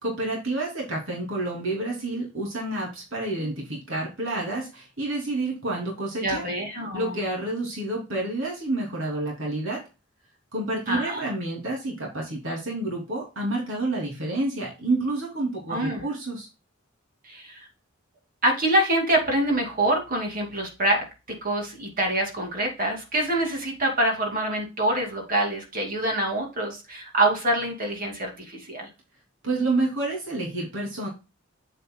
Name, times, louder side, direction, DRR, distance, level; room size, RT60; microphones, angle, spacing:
voice 1, 0.0-6.4 6.9-9.8 10.5-16.5 29.4-31.1, right 2 dB, 80° right, -2 dB, 3.1 m, -29 dB
voice 2, 6.2-7.2 10.9-11.2 15.7-16.0 17.2-17.7 18.4-21.0 21.4-28.9, right 1 dB, 45° right, 1 dB, 2.8 m, -25 dB
7.9 x 7.5 x 2.3 m, 0.29 s
head